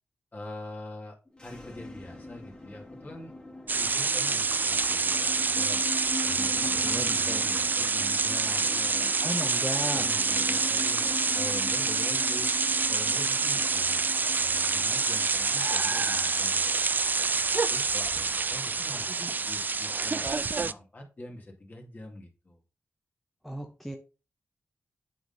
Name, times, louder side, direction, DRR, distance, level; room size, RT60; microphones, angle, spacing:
voice 1, 0.3-1.2 1.4-3.3 3.8-5.8 6.2-9.2 9.8-12.5 12.9-14.1 14.3-16.8 17.5-20.3 20.6-22.6, left 1 dB, 35° left, 1 dB, 2.1 m, -44 dB
sound 1, 1.3-16.8, left 2 dB, 20° left, 1.5 m, -42 dB
sound 2, 3.7-20.7, right 4 dB, 40° right, 0.3 m, -27 dB
voice 2, 6.8-7.5 9.2-10.1 23.4-24.0, equal, ahead, 3 dB, 0.9 m, -35 dB
7.8 x 3.8 x 3.9 m, 0.32 s
cardioid pair, 65°, 5 cm